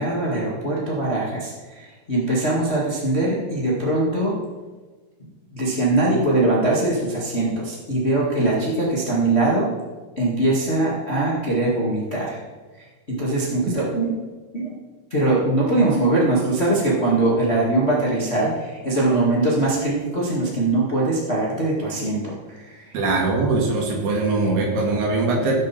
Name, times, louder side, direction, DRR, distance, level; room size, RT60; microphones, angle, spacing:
voice 1, 0.0-1.5 1.8-4.3 5.5-9.7 10.2-12.4 13.1-14.1 14.5-14.7 15.1-22.3 22.7-22.8, right 2 dB, 25° left, -5 dB, 1.4 m, -21 dB
voice 2, 22.9-25.5, right 3 dB, 80° right, -1 dB, 4.3 m, -21 dB
16.5 x 7.6 x 4.4 m, 1.3 s
omnidirectional pair, 4.6 m